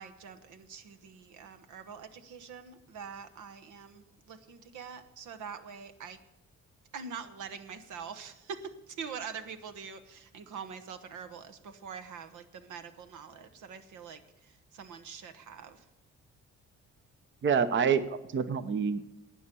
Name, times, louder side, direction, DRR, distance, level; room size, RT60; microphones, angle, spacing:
voice 1, 0.0-6.2 6.9-15.8, right 6 dB, 80° right, 9 dB, 1.2 m, -44 dB
voice 2, 17.4-19.0, right 6 dB, 40° right, 12 dB, 0.8 m, -27 dB
12.5 x 8.8 x 6.9 m, 0.93 s
cardioid pair, 90°, 30 cm